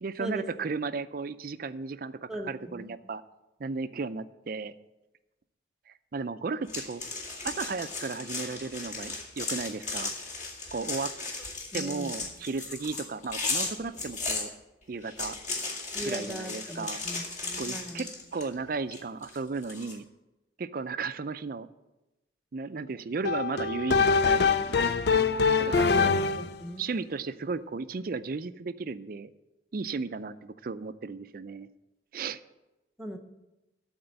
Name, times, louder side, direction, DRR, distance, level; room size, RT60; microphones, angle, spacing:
voice 1, 0.0-3.2 3.6-4.7 5.9-7.0 7.4-10.1 10.7-11.1 11.7-14.5 14.9-15.4 16.0-17.0 17.6-20.0 20.6-21.7 22.5-24.8 25.6-26.1 26.8-29.3 29.7-31.7 32.1-32.4, right 4 dB, 50° right, 13 dB, 0.4 m, -35 dB
voice 2, 2.3-2.9 11.7-12.1 15.9-18.1 25.6-26.1 26.4-26.8 33.0-33.2, equal, 5° right, 4 dB, 0.7 m, -39 dB
sound 1, 6.7-14.4 15.0-18.5 18.9-19.9, left 3 dB, 40° left, 2.1 m, -35 dB
sound 2, 23.2-26.6, left 5 dB, 60° left, 0.4 m, -24 dB
12.5 x 4.4 x 8.0 m, 1.0 s
head